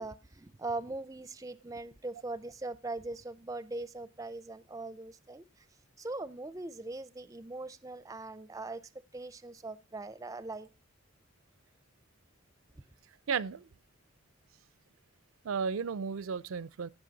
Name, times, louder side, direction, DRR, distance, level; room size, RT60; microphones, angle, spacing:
voice 1, 0.0-5.4 6.0-10.7, right 2 dB, 15° right, 0.4 m, -41 dB
voice 2, 13.3-13.7 15.4-16.9, right 6 dB, 80° right, 0.4 m, -33 dB
16.0 x 6.3 x 3.9 m
head